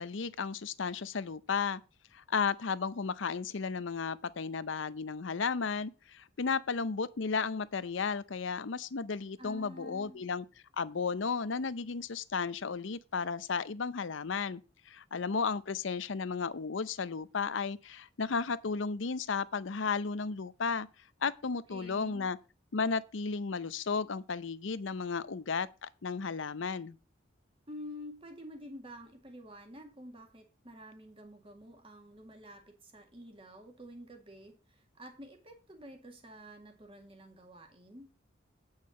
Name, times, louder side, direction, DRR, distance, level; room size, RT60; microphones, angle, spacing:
voice 1, 0.0-1.8 2.1-10.4 10.8-14.6 14.9-20.9 21.2-22.4 22.7-27.0, left 5 dB, 75° left, 0.6 m, -34 dB
voice 2, 9.4-10.2 21.5-22.3 27.7-38.1, equal, 25° right, 1.9 m, -49 dB
8.8 x 5.6 x 6.3 m
head